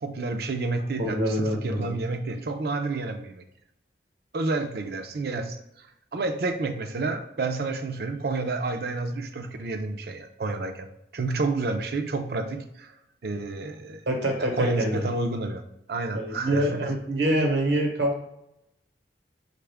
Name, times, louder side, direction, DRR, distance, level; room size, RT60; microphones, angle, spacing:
voice 1, 0.0-3.4 4.3-5.6 6.1-10.9 11.1-12.9 13.2-14.0 14.4-15.6 15.9-16.9, right 3 dB, 55° right, 7 dB, 0.4 m, -30 dB
voice 2, 1.0-1.9 14.1-15.0 16.1-18.2, right 1 dB, 80° right, 1 dB, 1.0 m, -25 dB
5.3 x 2.4 x 3.3 m, 0.80 s
head